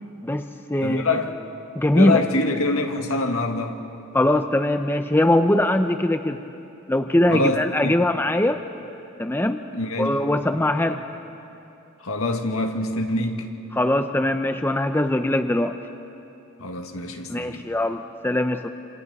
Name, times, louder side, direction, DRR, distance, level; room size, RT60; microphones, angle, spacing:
voice 1, 0.2-1.1 1.7-2.2 4.1-6.4 6.9-8.6 9.2-9.6 10.0-11.0 13.7-15.8 17.3-18.7, left 1 dB, 10° left, 8 dB, 0.5 m, -21 dB
voice 2, 0.8-1.4 1.9-3.8 7.3-7.9 9.7-10.3 12.0-13.5 16.6-17.6, left 2 dB, 75° left, 4 dB, 1.7 m, -25 dB
28.5 x 26.0 x 4.1 m, 2.8 s
head